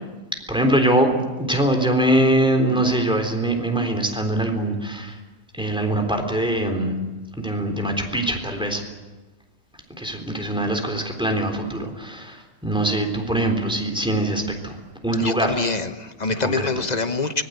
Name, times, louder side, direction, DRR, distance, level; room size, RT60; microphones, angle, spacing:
voice 1, 0.5-5.2 5.6-7.0 7.4-8.8 10.0-14.8 15.0-15.6 16.4-16.8, right 1 dB, 5° right, 3 dB, 3.6 m, -22 dB
voice 2, 15.2-17.4, left 3 dB, 30° left, 9 dB, 0.9 m, -25 dB
24.5 x 20.5 x 8.0 m, 1.2 s
omnidirectional pair, 1.6 m